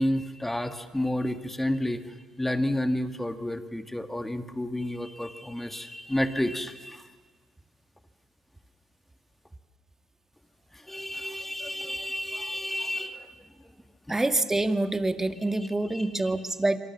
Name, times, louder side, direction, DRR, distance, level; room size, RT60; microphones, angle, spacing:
voice 1, 0.0-2.0 2.4-7.1 10.7-13.3 15.9-16.1, left 1 dB, 10° left, 8 dB, 2.0 m, -30 dB
voice 2, 14.1-16.8, right 2 dB, 15° right, 9 dB, 2.0 m, -26 dB
27.0 x 25.5 x 7.3 m, 1.3 s
hypercardioid pair, 45°, 2 cm